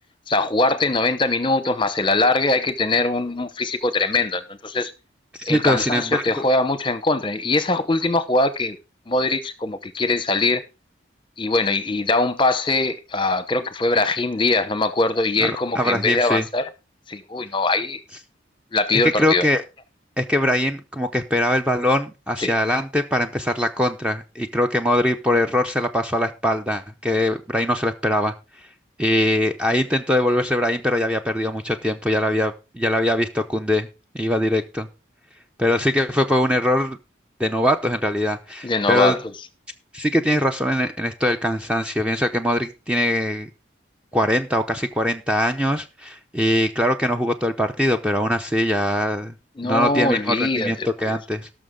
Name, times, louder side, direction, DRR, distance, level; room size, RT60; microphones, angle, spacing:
voice 1, 0.3-4.9 5.5-8.8 9.1-10.6 11.4-16.7 17.1-18.0 18.7-19.5 22.4-22.5 38.6-39.2 49.6-50.9, left 2 dB, 25° left, 0.9 m, -22 dB
voice 2, 5.4-6.2 15.4-16.5 18.9-19.6 20.2-28.3 29.0-33.9 34.1-34.9 35.6-37.0 37.4-39.2 39.9-43.5 44.1-49.3 49.6-51.5, left 1 dB, 5° right, 0.6 m, -22 dB
18.0 x 6.4 x 3.7 m
head